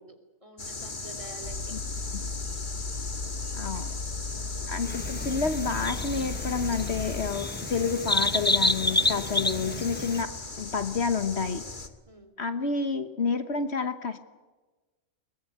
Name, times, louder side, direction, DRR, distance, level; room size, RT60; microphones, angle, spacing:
voice 1, 0.4-1.8 4.3-4.8 12.1-12.3, right 2 dB, 25° right, 5 dB, 3.3 m, -48 dB
sound 1, 0.6-11.9, left 3 dB, 40° left, 1.9 m, -38 dB
sound 2, 1.4-7.3, left 4 dB, 85° left, 2.2 m, -36 dB
voice 2, 3.5-3.9 4.7-11.6 12.4-14.2, left 5 dB, 55° left, 10 dB, 1.5 m, -29 dB
sound 3, 4.8-10.2, left 2 dB, 15° left, 0.4 m, -29 dB
22.5 x 20.5 x 9.3 m, 1.2 s
omnidirectional pair, 1.3 m